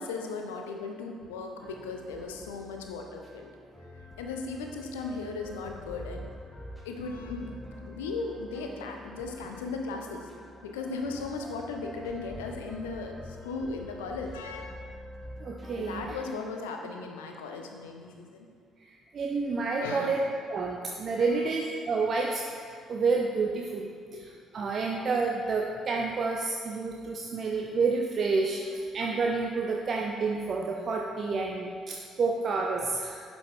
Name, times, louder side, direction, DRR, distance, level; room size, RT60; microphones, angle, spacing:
voice 1, 0.0-3.5 4.2-6.3 6.8-10.3 10.6-14.8 15.8-18.5 19.8-20.2 21.2-21.5 24.1-24.3 24.6-24.7, left 4 dB, 70° left, 3 dB, 0.8 m, -37 dB
sound 1, 1.6-16.1, left 1 dB, ahead, 1.8 m, -46 dB
voice 2, 15.4-16.0 18.8-20.2 20.5-22.5 22.9-33.2, right 4 dB, 40° right, 1 dB, 0.6 m, -29 dB
11.0 x 5.6 x 4.4 m, 2.2 s
figure-of-eight pair, 45°, 0 cm